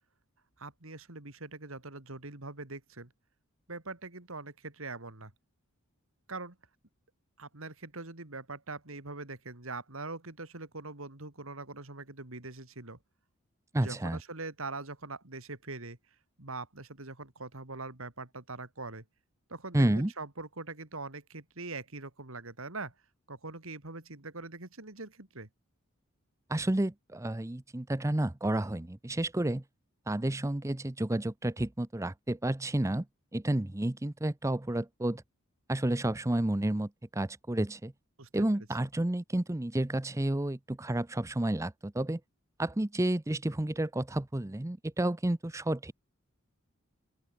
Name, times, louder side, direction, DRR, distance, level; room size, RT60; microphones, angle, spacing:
voice 1, 0.6-3.1 3.7-5.3 6.3-6.6 7.4-13.0 13.8-16.0 16.4-19.0 19.5-22.9 23.3-25.5 38.2-38.5, right 3 dB, 70° right, 2.8 m, -42 dB
voice 2, 13.7-14.2 19.7-20.1 26.5-29.6 30.1-33.1 33.3-35.2 35.7-37.9 38.3-42.2 42.6-45.9, right 1 dB, 15° right, 0.6 m, -30 dB
open air
head